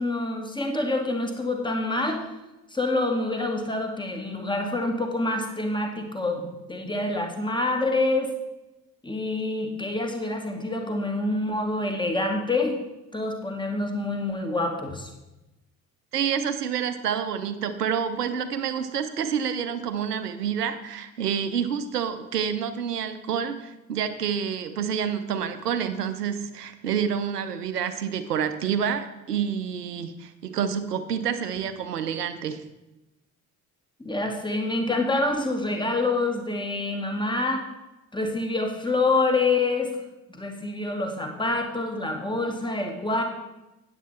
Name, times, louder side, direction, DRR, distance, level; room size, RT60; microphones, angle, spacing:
voice 1, 0.0-2.2 2.7-8.3 9.0-12.8 13.1-15.1 34.0-37.6 38.1-40.0 40.3-43.2, left 2 dB, 10° left, 2 dB, 1.9 m, -26 dB
voice 2, 16.1-32.6, right 7 dB, 85° right, 10 dB, 0.7 m, -28 dB
9.2 x 8.3 x 4.2 m, 0.98 s
figure-of-eight pair, 45°, 46 cm